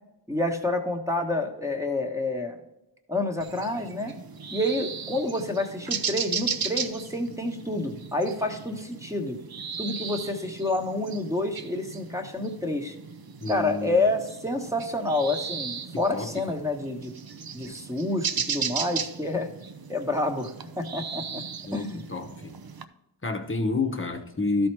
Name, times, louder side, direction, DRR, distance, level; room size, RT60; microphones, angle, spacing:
voice 1, 0.3-2.6 3.1-4.1 4.5-9.4 9.8-12.9 13.5-17.1 17.5-19.5 19.9-20.5 20.8-21.4 21.7-22.0, left 2 dB, 5° right, 3 dB, 1.2 m, -28 dB
sound 1, 3.4-22.8, right 6 dB, 50° right, 0.7 m, -36 dB
voice 2, 13.4-13.9 16.1-16.5 21.7-22.5 23.2-24.7, left 3 dB, 25° left, 5 dB, 1.0 m, -29 dB
12.5 x 4.4 x 4.6 m, 0.91 s
wide cardioid pair, 80°, 45 cm